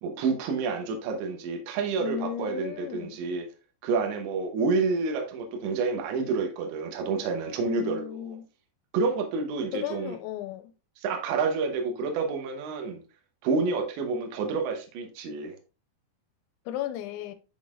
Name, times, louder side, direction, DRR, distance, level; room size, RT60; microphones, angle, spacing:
voice 1, 0.0-3.5 3.8-8.3 8.9-10.2 11.0-13.0 13.4-15.6, right 4 dB, 80° right, 3.2 m, -29 dB
voice 2, 2.0-3.2 7.6-8.5 9.7-10.7 16.7-17.3, left 11 dB, 90° left, 3.0 m, -35 dB
10.5 x 4.0 x 2.5 m
omnidirectional pair, 5.2 m